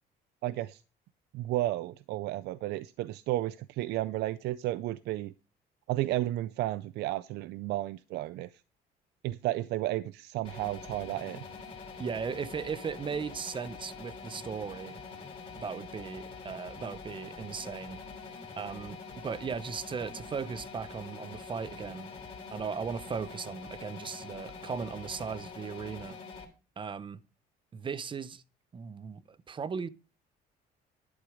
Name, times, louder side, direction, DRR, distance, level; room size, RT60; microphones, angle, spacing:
voice 1, 0.4-0.8 1.3-5.3 5.9-8.5 9.2-11.4, right 15 dB, 80° right, 0.5 m, -32 dB
sound 1, 10.4-26.4, left 4 dB, 35° left, 3.3 m, -45 dB
voice 2, 12.0-15.0 15.6-18.0 18.6-22.1 22.5-26.2 26.8-27.2 27.7-28.4 28.7-29.9, right 6 dB, 30° right, 0.6 m, -37 dB
11.5 x 6.9 x 4.9 m
cardioid pair, 110°, 17 cm